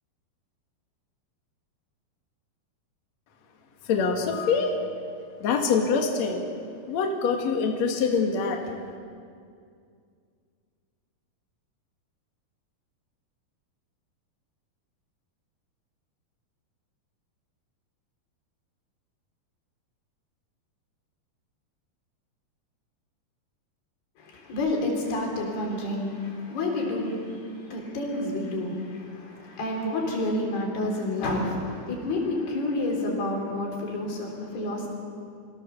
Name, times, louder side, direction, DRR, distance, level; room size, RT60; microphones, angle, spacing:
voice 1, 3.9-4.7 5.4-6.4 6.9-8.6, left 5 dB, 50° left, 2 dB, 2.7 m, -24 dB
voice 2, 24.3-27.4 27.7-34.9, left 2 dB, 80° left, 0 dB, 5.4 m, -29 dB
25.0 x 16.0 x 6.8 m, 2.3 s
omnidirectional pair, 4.5 m